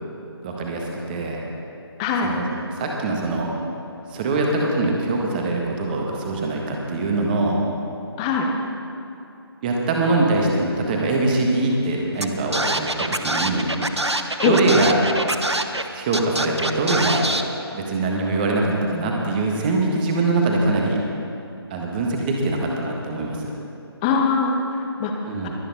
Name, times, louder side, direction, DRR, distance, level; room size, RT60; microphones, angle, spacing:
voice 1, 0.4-1.4 2.2-2.5 2.7-3.5 4.1-7.6 9.6-13.7 14.4-15.0 15.9-17.2 17.7-21.0 21.7-23.5 25.3-25.5, right 2 dB, 20° right, 0 dB, 1.5 m, -23 dB
voice 2, 2.0-2.3 8.2-8.5 14.4-14.6 24.0-25.1 25.4-25.5, left 5 dB, 15° left, 2 dB, 0.9 m, -21 dB
Scratching (performance technique), 12.2-12.3 12.5-15.8 16.1-17.4, right 1 dB, 90° right, 0.9 m, -24 dB
21.5 x 9.1 x 4.1 m, 2.7 s
figure-of-eight pair, 145°, 14 cm